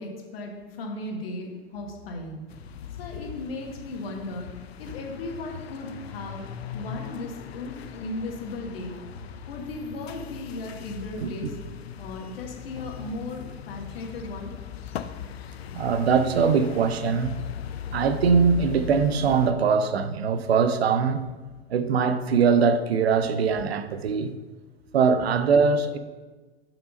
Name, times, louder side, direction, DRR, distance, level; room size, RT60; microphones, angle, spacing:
voice 1, 0.0-2.4 3.0-4.5 4.8-6.5 6.7-8.9 9.5-11.5 12.0-14.5, left 2 dB, 70° left, 1.6 m, -36 dB
sound 1, 2.5-19.5, left 9 dB, 85° left, 0.5 m, -39 dB
voice 2, 15.7-17.4 17.9-21.2 21.7-24.3 24.9-26.0, right 5 dB, 85° right, 0.6 m, -22 dB
5.8 x 5.2 x 5.3 m
hypercardioid pair, 105°, 31 cm